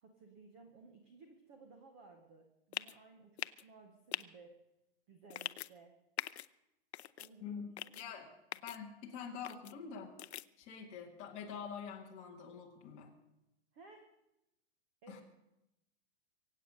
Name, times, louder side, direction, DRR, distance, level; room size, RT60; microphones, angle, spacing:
voice 1, 0.0-4.6 5.1-5.9 7.2-8.1 13.7-14.0 15.0-15.2, right 4 dB, 10° right, 4 dB, 0.5 m, -58 dB
sound 1, 2.7-2.9 3.4-3.6 4.1-4.2 5.3-5.7 6.2-6.5 6.9-7.3 7.8-8.0 8.5-8.8 9.4-9.7 10.2-10.4, left 12 dB, 70° left, 0.6 m, -41 dB
voice 2, 7.4-8.3 8.6-10.2 10.6-13.1 15.1-15.2, left 7 dB, 20° left, 0 dB, 1.8 m, -46 dB
24.0 x 8.5 x 6.4 m, 0.91 s
hypercardioid pair, 175°, 34 cm